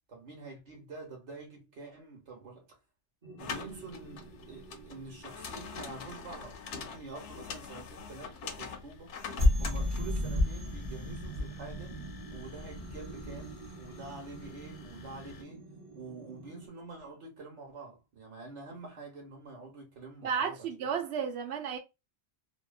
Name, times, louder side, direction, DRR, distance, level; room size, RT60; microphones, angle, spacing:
voice 1, 0.1-2.8 3.4-9.2 9.6-12.0 12.3-15.7 15.9-20.7, right 3 dB, 85° right, 1.2 m, -47 dB
sound 1, 3.2-6.3 9.4-16.7, left 1 dB, 35° right, 0.9 m, -35 dB
sound 2, 3.4-15.4, left 5 dB, 85° left, 0.9 m, -46 dB
voice 2, 20.2-21.8, right 7 dB, 70° right, 0.9 m, -33 dB
2.8 x 2.2 x 2.3 m
omnidirectional pair, 1.2 m